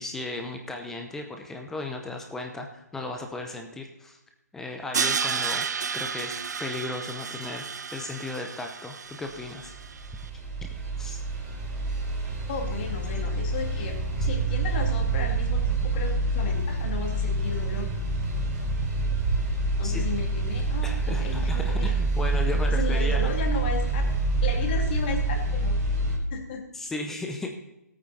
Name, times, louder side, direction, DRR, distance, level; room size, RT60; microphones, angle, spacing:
voice 1, 0.0-4.2 4.5-5.7 5.9-9.7 11.0-11.2 19.8-20.0 20.8-23.3 26.7-27.5, left 2 dB, 5° left, 3 dB, 0.7 m, -35 dB
Crash cymbal, 4.9-10.0, right 6 dB, 80° right, 0.5 m, -31 dB
sound 1, 9.6-26.2, right 2 dB, 25° right, 3.0 m, -27 dB
voice 2, 12.5-17.9 19.8-21.9 22.7-24.0 24.4-25.8 26.3-26.7, left 4 dB, 35° left, 2 dB, 2.3 m, -34 dB
15.5 x 8.9 x 4.2 m, 0.90 s
hypercardioid pair, 160°, 9 cm